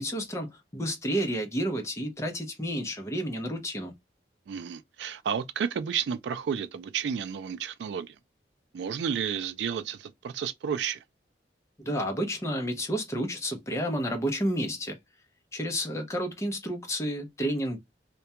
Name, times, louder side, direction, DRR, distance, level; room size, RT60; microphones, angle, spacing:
voice 1, 0.0-3.9 11.8-15.0 15.5-17.8, equal, 15° left, 0.6 m, -30 dB
voice 2, 4.5-8.1 8.7-11.0, right 7 dB, 75° right, 0.3 m, -31 dB
2.3 x 2.1 x 2.7 m
head